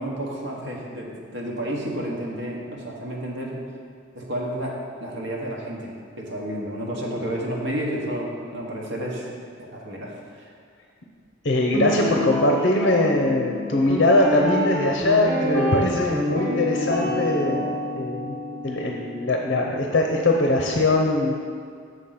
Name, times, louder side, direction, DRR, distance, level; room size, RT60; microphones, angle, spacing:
voice 1, 0.0-3.6 4.1-9.3 9.6-10.5 17.0-17.1 17.5-17.7, right 1 dB, 75° right, -2 dB, 1.4 m, -31 dB
voice 2, 11.4-17.6 18.0-18.4 18.6-21.4, left 2 dB, 60° left, 0 dB, 0.7 m, -21 dB
Guitar, 11.7-19.9, left 1 dB, 55° right, 2.1 m, -27 dB
6.5 x 5.1 x 5.8 m, 2.1 s
head